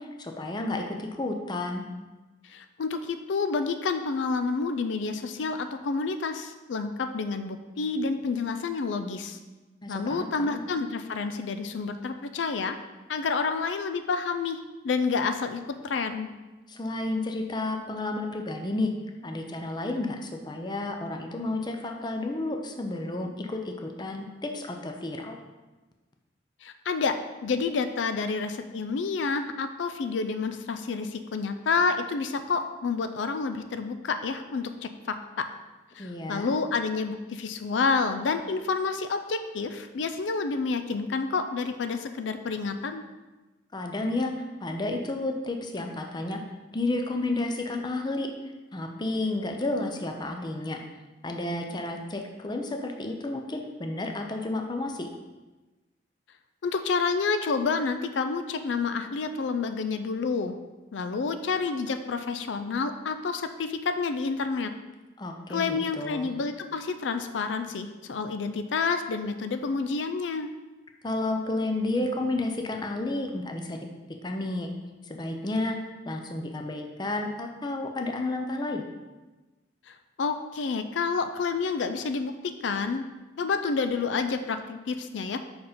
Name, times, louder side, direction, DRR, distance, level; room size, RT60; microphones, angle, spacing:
voice 1, 0.0-1.8 9.8-10.6 16.7-18.9 19.2-25.4 36.0-36.5 43.7-44.3 44.6-46.4 46.7-48.3 48.7-50.8 51.2-55.1 65.2-66.3 71.0-73.8 74.2-74.7 75.0-75.8 76.1-78.8, left 2 dB, 25° left, 4 dB, 0.5 m, -31 dB
voice 2, 2.4-9.4 9.9-12.8 13.1-16.3 26.6-27.2 27.4-35.5 35.9-43.0 56.6-60.6 60.9-64.7 65.5-70.5 79.9-83.0 83.4-85.4, left 4 dB, 80° left, 9 dB, 0.4 m, -29 dB
5.3 x 4.8 x 5.0 m, 1.2 s
head